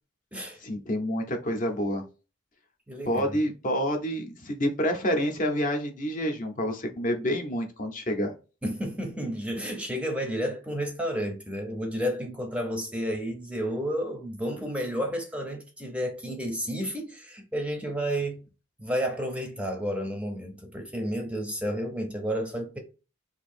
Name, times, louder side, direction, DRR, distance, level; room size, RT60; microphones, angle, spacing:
voice 1, 0.6-2.0 3.0-8.3, equal, 40° left, 0.7 m, -28 dB
voice 2, 2.9-3.4 8.6-18.4 18.8-22.8, equal, 5° right, 0.6 m, -31 dB
2.8 x 2.6 x 4.2 m
head